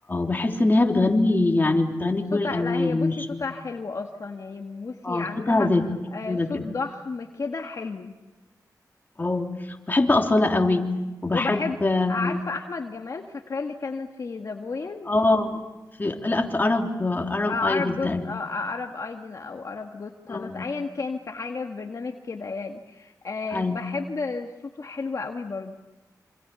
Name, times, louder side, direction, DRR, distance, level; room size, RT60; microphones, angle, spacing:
voice 1, 0.1-3.4 5.0-5.9 6.3-6.7 9.2-9.6 9.9-10.9 11.2-12.4 15.1-15.6 16.0-18.3 20.3-20.7 23.5-23.9, left 2 dB, 30° left, 2 dB, 3.4 m, -23 dB
voice 2, 2.3-5.7 6.1-8.1 11.3-11.8 12.1-15.1 17.5-25.7, left 4 dB, 55° left, 2 dB, 1.8 m, -32 dB
27.0 x 26.0 x 7.0 m, 1.1 s
wide cardioid pair, 80°, 7 cm